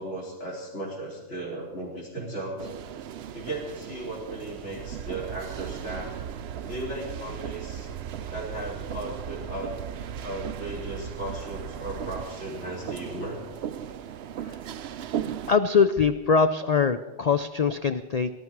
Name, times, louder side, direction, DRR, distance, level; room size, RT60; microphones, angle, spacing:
voice 1, 0.0-2.7 3.3-6.1 6.7-7.9 8.3-9.7 10.2-13.4, right 1 dB, 60° left, -3 dB, 4.4 m, -36 dB
sound 1, 2.6-15.5, right 9 dB, 60° right, 0.8 m, -38 dB
sound 2, 4.8-12.3, right 7 dB, 75° right, 1.1 m, -39 dB
voice 2, 15.5-18.3, left 5 dB, 75° left, 9 dB, 0.3 m, -23 dB
19.0 x 12.5 x 4.7 m, 1.1 s
omnidirectional pair, 1.4 m